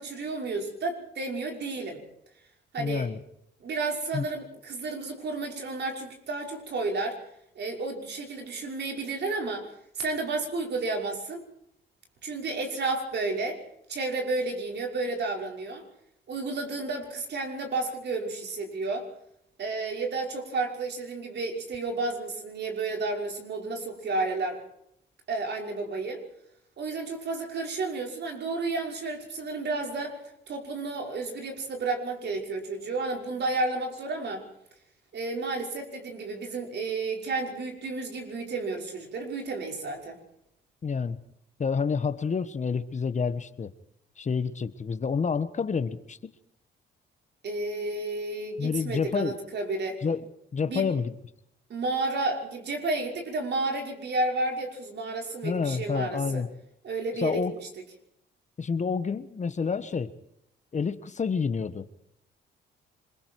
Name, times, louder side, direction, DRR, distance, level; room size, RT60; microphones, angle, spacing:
voice 1, 0.0-2.0 2.7-3.1 3.6-7.2 7.6-9.7 10.0-11.5 12.2-13.6 13.9-15.8 16.3-19.1 19.6-24.6 25.3-26.2 26.8-30.2 30.5-34.5 35.1-40.2 47.4-50.0 50.6-50.9 51.7-56.4 56.8-57.7, right 3 dB, 60° right, 2 dB, 5.6 m, -31 dB
voice 2, 2.8-3.2 4.1-4.2 40.8-41.2 41.6-43.7 44.2-46.2 48.6-49.4 50.0-50.2 50.5-51.1 55.4-56.5 57.2-57.5 58.6-60.1 60.7-61.9, left 5 dB, 35° left, 12 dB, 1.4 m, -28 dB
27.0 x 22.0 x 4.8 m, 0.76 s
cardioid pair, 90°, 20 cm